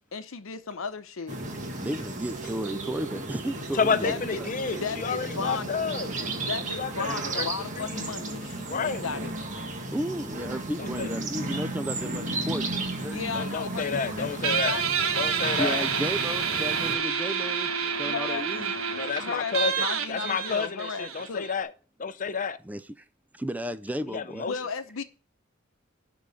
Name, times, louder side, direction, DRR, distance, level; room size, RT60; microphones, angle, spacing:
voice 1, 0.1-1.4 4.0-5.7 6.4-9.3 13.1-14.9 15.6-16.1 18.0-18.7 19.2-21.5 24.4-25.0, left 5 dB, 80° left, 0.8 m, -35 dB
sound 1, 1.3-16.9, right 2 dB, 40° right, 1.8 m, -34 dB
voice 2, 1.8-4.5 6.1-6.3 9.9-13.2 15.6-18.8 22.6-23.0 23.3-24.5, equal, 10° right, 0.4 m, -34 dB
voice 3, 3.7-6.1 6.8-7.1 7.3-7.5 7.7-8.0 8.7-9.1 10.8-11.1 13.3-14.8 15.2-15.8 18.9-21.7 22.0-22.6 24.1-24.5, left 5 dB, 40° left, 0.6 m, -30 dB
Guitar, 14.4-21.6, right 7 dB, 85° right, 1.2 m, -28 dB
11.5 x 3.8 x 6.9 m
head